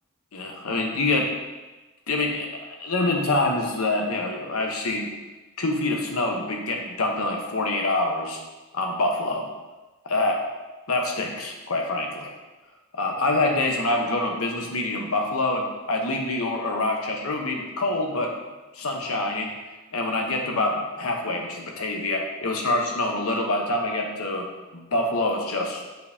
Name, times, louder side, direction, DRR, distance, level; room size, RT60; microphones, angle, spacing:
voice 1, 0.3-1.3 2.1-5.1 5.6-8.4 8.7-9.5 10.0-10.4 10.9-12.3 12.9-18.3 18.7-19.5 19.9-24.5 24.7-25.8, left 2 dB, 70° left, 1 dB, 1.0 m, -26 dB
7.5 x 5.2 x 2.8 m, 1.2 s
head